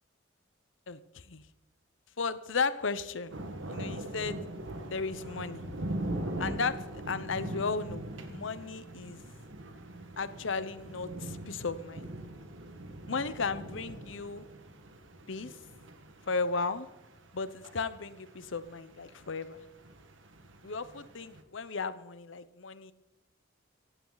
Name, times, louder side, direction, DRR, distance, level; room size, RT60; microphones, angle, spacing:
voice 1, 0.9-1.4 2.2-3.4 3.7-4.4 4.9-5.8 6.4-9.2 10.2-12.1 13.1-14.5 15.3-15.6 16.3-16.9 17.3-19.6 20.6-22.9, left 4 dB, 75° left, 15 dB, 0.9 m, -35 dB
sound 1, 3.3-21.4, right 1 dB, 75° right, 1.6 m, -42 dB
17.0 x 15.5 x 4.0 m, 0.98 s
head